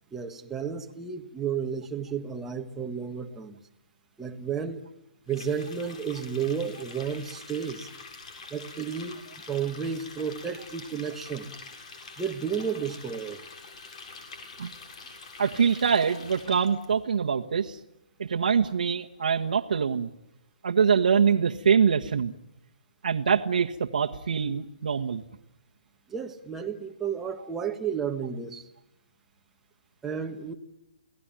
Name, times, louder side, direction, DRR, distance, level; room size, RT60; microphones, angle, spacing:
voice 1, 0.1-3.6 4.2-4.8 5.3-7.9 8.5-9.2 9.5-11.5 12.2-13.4 26.1-28.6 30.0-30.5, right 7 dB, 5° right, 3 dB, 1.5 m, -32 dB
Water tap faucet, 5.3-16.8, left 4 dB, 50° left, 7.5 m, -46 dB
voice 2, 15.4-17.8 18.2-20.1 20.6-22.3 23.0-25.2, right 6 dB, 75° right, 2 dB, 1.5 m, -24 dB
29.0 x 18.5 x 9.0 m, 0.86 s
hypercardioid pair, 165°, 4 cm